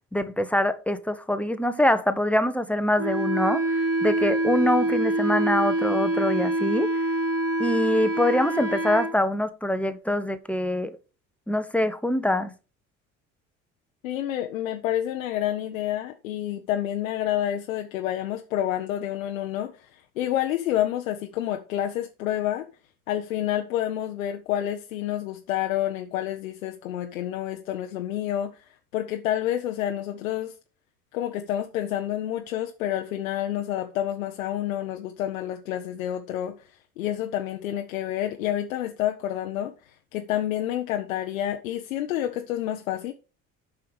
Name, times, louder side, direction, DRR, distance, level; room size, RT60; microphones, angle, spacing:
voice 1, 0.1-3.6 4.0-6.9 7.6-10.9 11.5-12.5, left 1 dB, 5° left, 1.0 m, -24 dB
Wind instrument woodwind instrument, 3.0-9.1, right 2 dB, 35° right, 1.5 m, -25 dB
voice 2, 14.0-22.7 23.1-28.7 28.9-30.5 31.1-43.1, left 12 dB, 75° left, 0.8 m, -29 dB
8.8 x 5.7 x 5.1 m
figure-of-eight pair, 60°, 41 cm